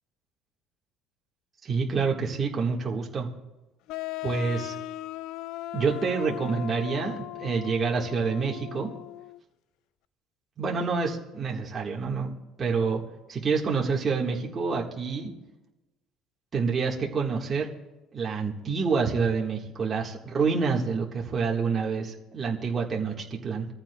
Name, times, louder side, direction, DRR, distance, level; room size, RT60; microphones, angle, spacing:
voice 1, 1.6-3.3 4.2-4.7 5.7-8.9 10.6-13.0 13.3-15.3 16.5-17.7 18.1-23.7, right 5 dB, 30° right, -2 dB, 1.6 m, -27 dB
sound 1, 3.9-9.4, left 15 dB, 75° left, 0.3 m, -37 dB
23.5 x 14.5 x 2.3 m, 1.1 s
cardioid pair, 135°, 0 cm